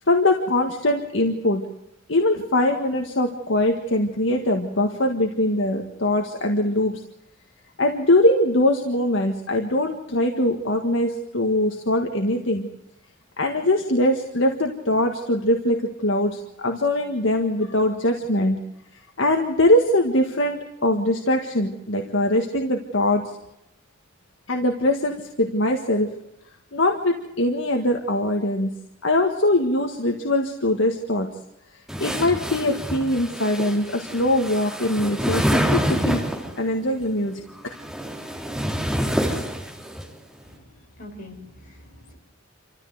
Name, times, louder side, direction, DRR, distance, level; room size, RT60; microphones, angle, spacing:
voice 1, 0.1-1.6 2.1-6.9 7.8-12.7 13.4-18.6 18.9-23.2 24.5-26.1 26.7-28.8 29.0-31.3 32.0-36.2 36.6-37.8, left 1 dB, 65° left, 3 dB, 1.7 m, -22 dB
sound 1, 31.9-36.6 37.6-40.0, equal, ahead, 3.6 m, -26 dB
voice 2, 40.4-42.1, left 1 dB, 45° left, 1 dB, 4.9 m, -44 dB
28.0 x 14.0 x 8.0 m, 0.88 s
head